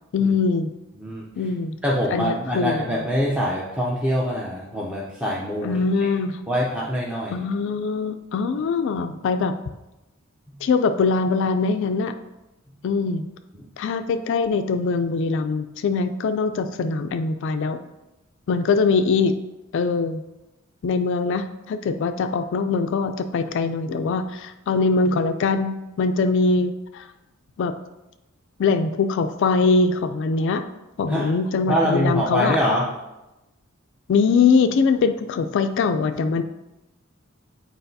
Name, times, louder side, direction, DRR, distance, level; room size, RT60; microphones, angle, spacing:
voice 1, 0.1-0.7 1.4-1.8 2.1-2.8 5.6-6.4 7.3-9.5 10.6-12.1 12.8-13.3 13.8-17.8 18.5-19.4 19.7-20.2 20.8-27.1 27.6-27.7 28.6-30.7 31.0-32.6 34.1-36.4, left 4 dB, 60° left, 8 dB, 0.3 m, -22 dB
voice 2, 1.8-6.1 6.5-7.4 31.1-31.3 31.7-32.8, equal, 5° right, -5 dB, 0.6 m, -24 dB
7.9 x 4.5 x 2.7 m, 0.99 s
head